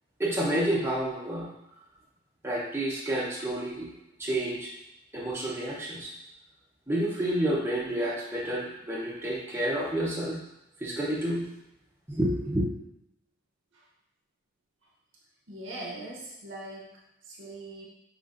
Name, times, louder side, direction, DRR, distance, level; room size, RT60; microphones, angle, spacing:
voice 1, 0.2-1.5 2.4-3.9 4.2-4.7 5.1-6.1 6.9-10.4 10.8-11.4 12.1-12.7, right 1 dB, 10° right, -5 dB, 0.7 m, -29 dB
voice 2, 15.5-17.9, right 1 dB, 70° right, -4 dB, 0.8 m, -41 dB
5.4 x 3.2 x 2.5 m, 0.90 s
head